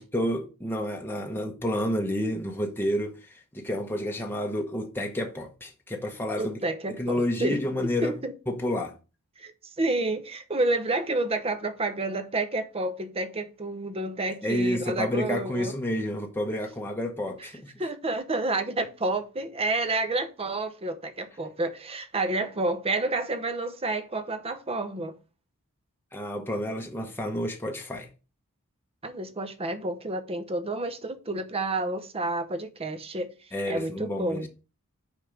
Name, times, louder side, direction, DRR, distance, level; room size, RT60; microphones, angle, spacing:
voice 1, 0.0-6.6 7.0-8.1 8.5-8.9 14.4-17.7 26.1-28.1 33.5-34.5, left 1 dB, 10° left, 0.9 m, -30 dB
voice 2, 6.4-8.3 9.4-9.5 9.8-15.7 17.8-25.1 29.0-33.3 33.7-34.5, right 2 dB, 25° right, 0.8 m, -29 dB
5.3 x 5.0 x 6.1 m
head